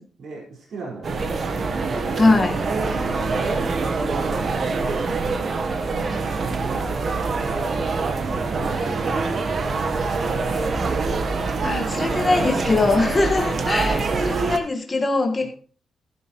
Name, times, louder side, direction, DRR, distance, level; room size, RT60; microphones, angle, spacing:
voice 1, 0.2-2.4 2.9-3.9 6.0-7.8 8.5-9.6 10.0-11.0 13.4-14.4 15.4-15.5, right 3 dB, 60° right, -2 dB, 4.9 m, -37 dB
sound 1, 1.0-14.6, right 4 dB, 40° right, 1.2 m, -25 dB
voice 2, 2.2-2.5 11.6-15.5, left 3 dB, 20° left, 2 dB, 1.6 m, -21 dB
14.5 x 11.5 x 3.1 m, 0.42 s
wide cardioid pair, 175°, 0 cm